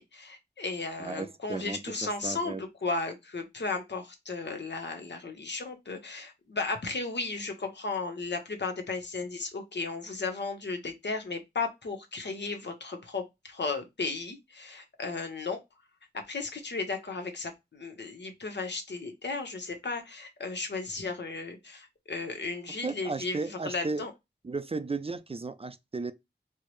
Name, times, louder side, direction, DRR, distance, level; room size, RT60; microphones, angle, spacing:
voice 1, 0.0-15.6 16.3-24.1, left 3 dB, 80° left, 0.8 m, -35 dB
voice 2, 1.0-2.6 22.8-24.0 24.4-26.1, right 3 dB, 35° right, 0.4 m, -35 dB
4.4 x 2.0 x 3.0 m
wide cardioid pair, 55°, 18 cm